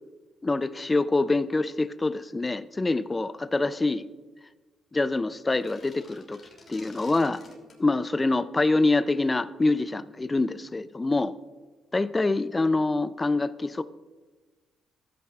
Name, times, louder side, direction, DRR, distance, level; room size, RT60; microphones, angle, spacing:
voice 1, 0.4-4.1 4.9-6.4 6.7-7.4 7.8-11.3 11.9-13.8, left 2 dB, 20° left, 15 dB, 0.4 m, -25 dB
sound 1, 5.5-7.8, left 3 dB, 40° left, 2.7 m, -51 dB
15.0 x 8.6 x 2.4 m, 1.3 s
cardioid pair, 90°, 0 cm